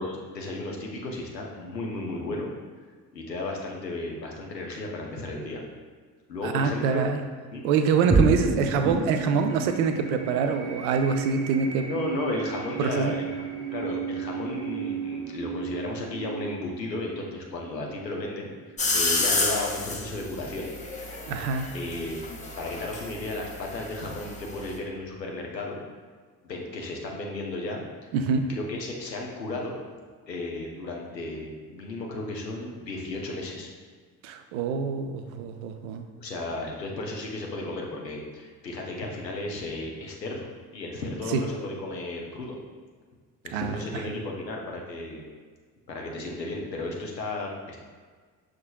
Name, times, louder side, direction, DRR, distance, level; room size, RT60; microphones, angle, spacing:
voice 1, 0.0-2.5 3.1-5.6 6.3-7.1 7.5-7.6 11.9-13.4 13.7-18.5 18.9-20.7 21.7-25.8 26.4-27.8 28.5-29.8 30.3-33.7 36.2-42.6 43.4-45.2 45.9-47.8, left 2 dB, 85° left, 0 dB, 0.7 m, -34 dB
voice 2, 6.4-7.2 7.6-11.9 12.8-13.1 21.3-21.7 28.1-28.4 34.2-36.1 41.3-41.4 43.5-44.2, right 6 dB, 60° right, 6 dB, 0.5 m, -25 dB
sound 1, 8.1-18.8, right 3 dB, 15° right, 0.9 m, -31 dB
sound 2, 18.8-24.8, left 3 dB, 15° left, 0.6 m, -31 dB
6.2 x 3.7 x 2.2 m, 1.5 s
figure-of-eight pair, 55°, 49 cm